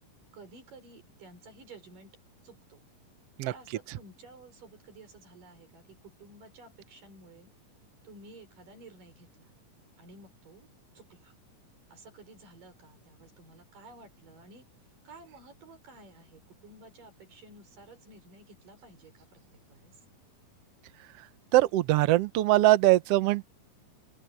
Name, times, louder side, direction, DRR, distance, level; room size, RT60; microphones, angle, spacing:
voice 1, 0.3-2.2 2.4-2.8 3.4-7.5 8.0-9.5 10.0-10.7 11.0-11.3 11.9-14.7 15.0-20.0, right 2 dB, 70° right, 7.4 m, -53 dB
voice 2, 21.5-23.4, right 16 dB, 90° right, 1.3 m, -22 dB
open air
omnidirectional pair, 4.0 m